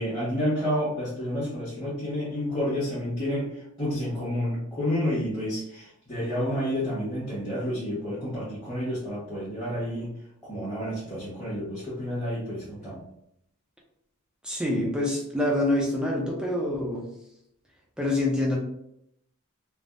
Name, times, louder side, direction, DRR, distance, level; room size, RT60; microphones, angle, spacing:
voice 1, 0.0-3.5 3.8-10.1 10.4-13.0, equal, 15° left, -12 dB, 1.0 m, -30 dB
voice 2, 14.4-17.1 18.0-18.6, left 1 dB, 5° right, -3 dB, 0.4 m, -26 dB
3.3 x 2.0 x 2.4 m, 0.75 s
head